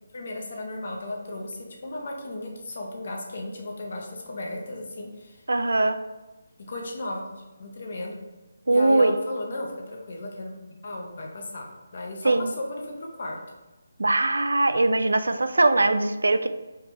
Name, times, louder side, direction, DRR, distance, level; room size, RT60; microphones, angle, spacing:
voice 1, 0.1-5.4 6.7-7.3 7.6-8.2 8.7-11.6 11.9-13.4, left 1 dB, 45° left, 1 dB, 0.9 m, -35 dB
voice 2, 5.5-6.0 8.7-9.2 12.2-12.5 14.0-16.5, right 2 dB, 65° right, 10 dB, 0.3 m, -21 dB
4.9 x 3.3 x 3.2 m, 1.1 s
figure-of-eight pair, 150°, 0 cm